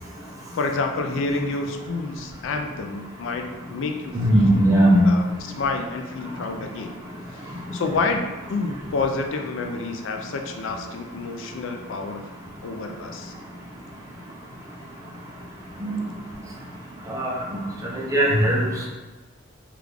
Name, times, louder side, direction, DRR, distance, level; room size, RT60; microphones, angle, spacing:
voice 1, 0.5-4.6 5.0-7.0 7.3-12.3 12.6-13.3, left 3 dB, 65° left, 4 dB, 0.3 m, -29 dB
voice 2, 4.1-5.1 15.8-16.0 17.1-17.3 18.1-18.6, right 1 dB, 15° right, -3 dB, 0.5 m, -18 dB
3.4 x 2.4 x 3.2 m, 1.2 s
head